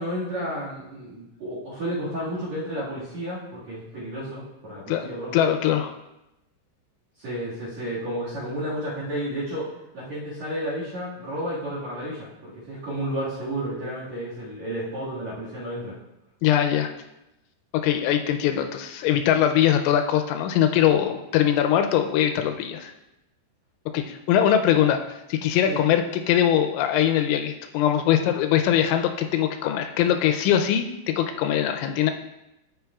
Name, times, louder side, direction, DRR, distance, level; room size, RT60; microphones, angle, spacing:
voice 1, 0.0-5.5 7.2-9.7 9.9-16.0 25.7-25.8, equal, 50° right, -8 dB, 2.2 m, -32 dB
voice 2, 5.3-5.9 16.4-16.9 17.7-22.9 23.9-32.1, left 10 dB, 85° left, 6 dB, 2.9 m, -22 dB
11.0 x 7.4 x 2.3 m, 0.92 s
omnidirectional pair, 5.5 m